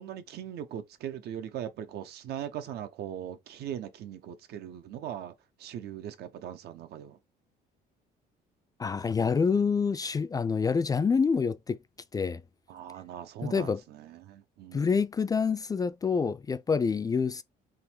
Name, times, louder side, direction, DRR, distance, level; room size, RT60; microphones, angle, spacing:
voice 1, 0.0-5.3 5.6-7.2 12.7-15.0, right 10 dB, 70° right, 0.9 m, -40 dB
voice 2, 8.8-11.8 12.1-12.4 13.4-13.8 14.7-17.4, left 5 dB, 20° left, 0.3 m, -27 dB
3.8 x 3.0 x 4.5 m
cardioid pair, 110°, 17 cm